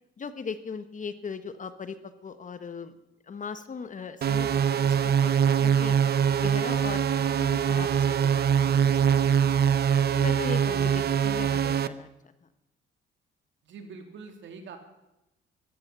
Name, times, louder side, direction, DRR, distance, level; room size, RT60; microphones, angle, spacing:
voice 1, 0.2-2.0 2.2-3.0 3.3-6.0 6.4-9.6 10.1-12.1, left 5 dB, 40° left, 11 dB, 1.3 m, -39 dB
sound 1, 4.2-11.9, right 8 dB, 55° right, 0.8 m, -23 dB
voice 2, 13.6-14.8, right 5 dB, 70° right, 5 dB, 3.2 m, -44 dB
14.0 x 13.5 x 6.8 m, 0.93 s
cardioid pair, 90°, 20 cm